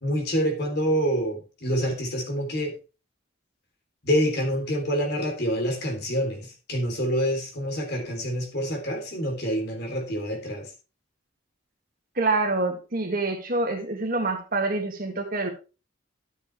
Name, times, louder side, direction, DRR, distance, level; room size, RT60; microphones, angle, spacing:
voice 1, 0.0-2.7 4.0-10.7, equal, 50° left, 2 dB, 3.3 m, -27 dB
voice 2, 12.2-15.5, right 3 dB, 40° right, 3 dB, 2.0 m, -26 dB
13.0 x 7.4 x 3.3 m, 0.32 s
head